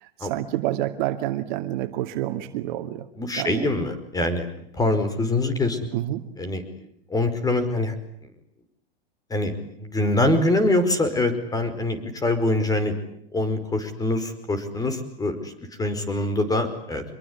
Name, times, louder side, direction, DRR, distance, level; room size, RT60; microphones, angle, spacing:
voice 1, 0.0-3.1 3.4-3.7 5.9-6.3, right 14 dB, 50° right, 8 dB, 2.5 m, -28 dB
voice 2, 3.2-4.5 4.7-5.8 6.4-6.6 7.1-7.9 9.3-12.9 13.3-15.5 15.8-17.0, left 2 dB, 10° left, 11 dB, 5.1 m, -24 dB
25.5 x 22.5 x 9.8 m, 0.68 s
hypercardioid pair, 130°, 30 cm